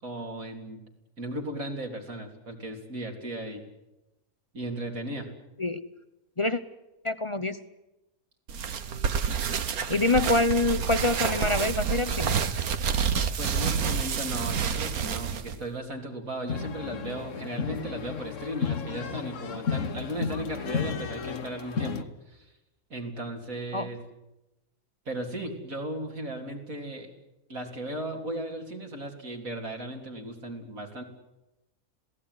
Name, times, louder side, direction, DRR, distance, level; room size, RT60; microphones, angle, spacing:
voice 1, 0.0-0.8 1.2-3.6 4.5-5.3 13.4-22.5 22.9-24.0 25.1-27.1 27.5-31.0, right 1 dB, 70° right, 2 dB, 3.9 m, -36 dB
voice 2, 7.0-7.6 9.9-12.4 23.7-23.9, left 2 dB, 25° left, 12 dB, 0.8 m, -25 dB
sound 1, 8.5-15.6, right 7 dB, 85° right, 1.7 m, -28 dB
sound 2, 16.5-22.0, left 6 dB, 60° left, 1.5 m, -33 dB
27.0 x 17.5 x 9.7 m, 0.97 s
omnidirectional pair, 1.5 m